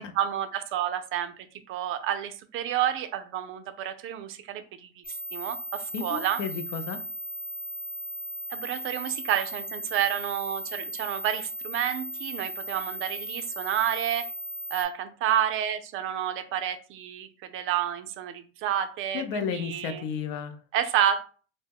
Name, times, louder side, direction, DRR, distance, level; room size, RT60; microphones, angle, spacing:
voice 1, 0.0-5.0 5.3-6.4 8.5-14.3 14.7-20.0 20.7-21.2, right 10 dB, 40° right, 10 dB, 0.4 m, -30 dB
sound 1, 5.0-14.8, right 1 dB, 45° left, 0.9 m, -37 dB
voice 2, 5.9-7.0 19.1-20.5, left 6 dB, 65° left, 8 dB, 0.5 m, -32 dB
2.1 x 2.0 x 3.4 m, 0.40 s
supercardioid pair, 95°, 32 cm